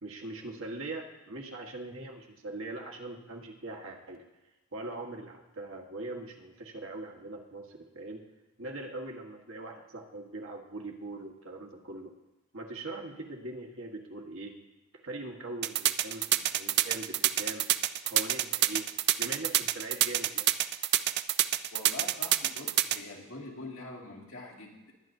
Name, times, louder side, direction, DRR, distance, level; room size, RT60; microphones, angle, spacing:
voice 1, 0.0-4.2 4.7-8.2 8.6-12.1 12.5-14.5 15.0-17.6 18.0-18.9 19.2-20.5, right 2 dB, 70° right, 1 dB, 1.5 m, -41 dB
sound 1, 15.6-23.0, right 14 dB, 55° right, 0.4 m, -26 dB
voice 2, 21.7-24.9, left 2 dB, 80° left, -2 dB, 2.3 m, -44 dB
20.5 x 10.5 x 2.7 m, 1.0 s
head